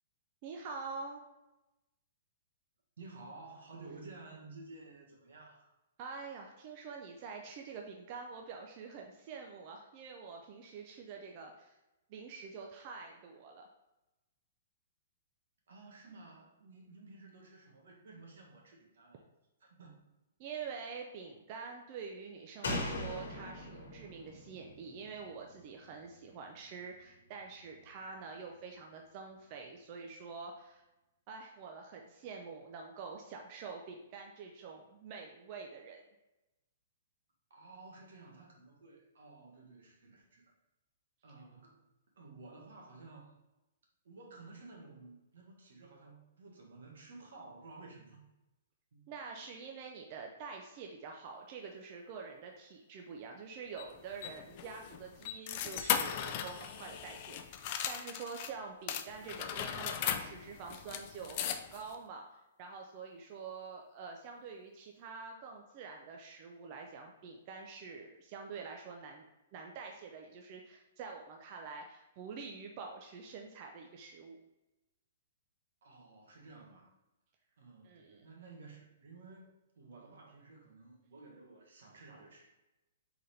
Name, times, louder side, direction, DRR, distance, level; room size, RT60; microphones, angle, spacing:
voice 1, 0.4-1.2 6.0-11.8 12.1-13.7 20.4-30.8 31.3-36.0 49.1-69.3 69.5-74.4 77.8-78.2, right 5 dB, 35° right, 2 dB, 0.4 m, -46 dB
voice 2, 3.0-5.7 15.7-19.3 19.6-20.0 37.5-40.5 41.2-41.8 42.2-43.4 44.0-48.3 48.9-49.1 75.8-76.9 77.6-82.6, right 3 dB, 80° right, 0 dB, 1.4 m, -53 dB
Slam, 22.6-26.1 26.4-26.5, left 2 dB, 90° left, 1.1 m, -41 dB
sound 1, 53.8-58.5 58.9-62.0, left 9 dB, 35° left, 0.3 m, -38 dB
4.2 x 3.9 x 3.2 m, 0.99 s
hypercardioid pair, 165°, 0 cm